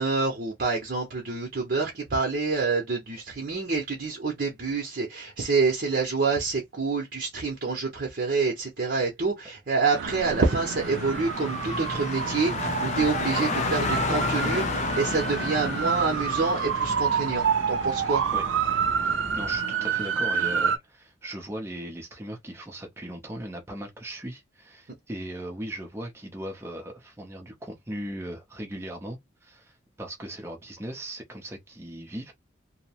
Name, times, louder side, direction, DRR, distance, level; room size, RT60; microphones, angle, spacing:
voice 1, 0.0-18.2, right 4 dB, 50° right, 0.7 m, -27 dB
sound 1, 9.9-20.8, right 7 dB, 90° right, 0.4 m, -28 dB
Car, 10.1-19.6, left 4 dB, 35° left, 0.3 m, -32 dB
voice 2, 19.0-32.3, right 1 dB, 15° right, 0.6 m, -38 dB
2.8 x 2.0 x 2.8 m
head